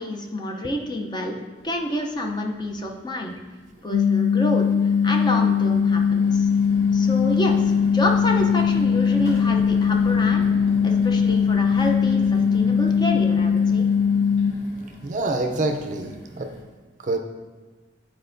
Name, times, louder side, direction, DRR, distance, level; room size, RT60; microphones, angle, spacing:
voice 1, 0.0-3.4 3.8-6.5 6.9-10.4 10.8-13.9, left 1 dB, 25° left, 2 dB, 0.6 m, -28 dB
sound 1, 1.6-1.7 2.1-2.8 3.4-16.6, equal, 45° left, 2.1 m, -38 dB
sound 2, 3.9-14.5, left 6 dB, 80° left, 0.3 m, -20 dB
voice 2, 15.0-16.5 17.0-17.2, right 2 dB, 45° right, 5 dB, 0.5 m, -26 dB
10.5 x 4.3 x 2.6 m, 1.3 s
head